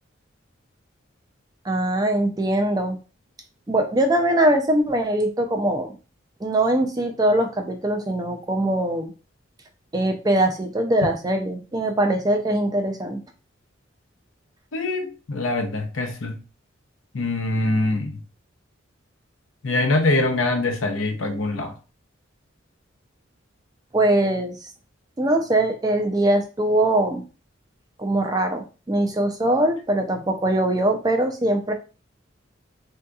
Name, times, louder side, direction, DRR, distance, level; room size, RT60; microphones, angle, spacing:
voice 1, 1.6-3.0 3.7-5.9 6.4-9.1 9.9-13.2 23.9-24.6 25.2-27.2 28.0-31.7, right 1 dB, 20° right, 0.4 m, -22 dB
voice 2, 14.7-16.4 17.1-18.2 19.6-21.7, left 2 dB, 80° left, 0.7 m, -23 dB
3.6 x 2.8 x 2.3 m
head